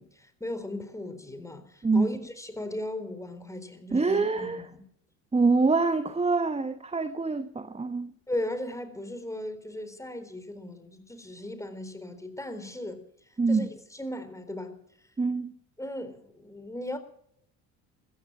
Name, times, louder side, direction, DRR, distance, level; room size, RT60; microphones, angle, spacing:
voice 1, 0.0-4.8 8.3-14.8 15.8-17.0, left 1 dB, 5° left, 4.0 m, -37 dB
voice 2, 3.9-4.6 5.3-8.1 13.4-13.7 15.2-15.5, right 3 dB, 15° right, 1.2 m, -25 dB
15.5 x 14.5 x 6.1 m
hypercardioid pair, 65°, 43 cm